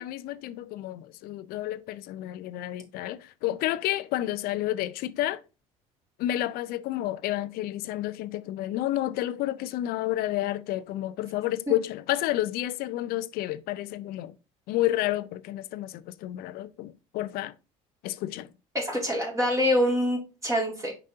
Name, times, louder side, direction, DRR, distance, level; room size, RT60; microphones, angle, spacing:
voice 1, 0.0-5.4 6.2-14.3 14.7-17.5 18.0-18.5, left 14 dB, 60° left, 0.5 m, -30 dB
voice 2, 18.7-20.9, equal, 20° right, 2.3 m, -25 dB
6.6 x 5.2 x 2.7 m
hypercardioid pair, 70°, 17 cm